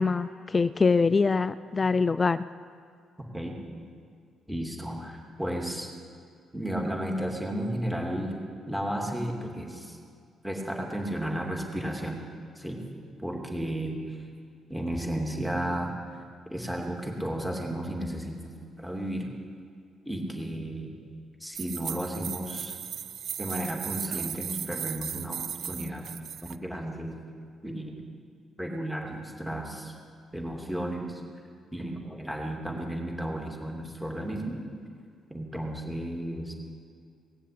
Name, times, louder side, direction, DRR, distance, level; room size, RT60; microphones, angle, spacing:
voice 1, 0.0-2.4, left 4 dB, 30° left, 15 dB, 0.4 m, -24 dB
voice 2, 4.5-5.9 6.5-8.4 8.7-10.0 10.4-12.2 12.5-12.8 13.2-14.2 14.7-16.2 16.5-19.3 20.0-20.9 21.4-22.8 23.4-26.1 26.4-27.1 27.6-28.0 28.6-29.9 30.3-31.2 31.7-34.6 35.3-36.5, right 1 dB, ahead, 0 dB, 2.8 m, -33 dB
sound 1, 21.5-26.6, right 9 dB, 65° right, 0.4 m, -36 dB
19.0 x 7.4 x 8.5 m, 2.3 s
cardioid pair, 90°, 0 cm